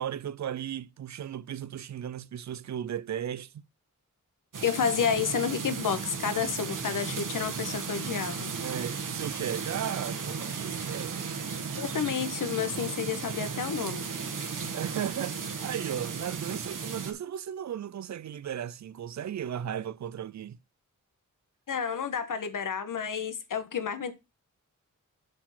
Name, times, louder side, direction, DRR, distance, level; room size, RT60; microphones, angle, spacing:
voice 1, 0.0-3.6 8.6-11.3 14.7-20.6, right 9 dB, 60° right, 0.5 m, -36 dB
sound 1, 4.5-17.1, right 5 dB, 75° right, 1.8 m, -35 dB
voice 2, 4.6-8.5 11.7-14.0 21.7-24.1, left 7 dB, 80° left, 1.3 m, -30 dB
7.7 x 4.6 x 5.9 m
wide cardioid pair, 160°, 31 cm